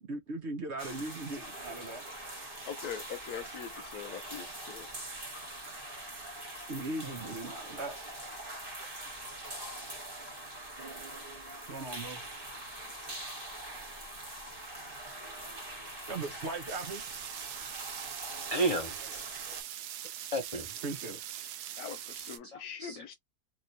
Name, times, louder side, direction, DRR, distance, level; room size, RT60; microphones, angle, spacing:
voice 1, 0.0-2.0 6.7-8.0 11.7-12.2 16.1-17.0 19.1-19.2 20.8-21.2, right 2 dB, 55° right, 0.9 m, -38 dB
sound 1, 0.8-19.6, right 1 dB, 35° right, 1.4 m, -43 dB
voice 2, 2.6-4.9 13.1-13.2 21.8-23.1, left 8 dB, 70° left, 1.2 m, -42 dB
voice 3, 9.2-9.8 18.5-18.9 20.3-20.7 22.5-23.1, right 2 dB, 45° left, 0.5 m, -33 dB
sound 2, 16.7-22.4, right 11 dB, 80° right, 1.1 m, -42 dB
3.0 x 2.9 x 2.6 m
omnidirectional pair, 1.7 m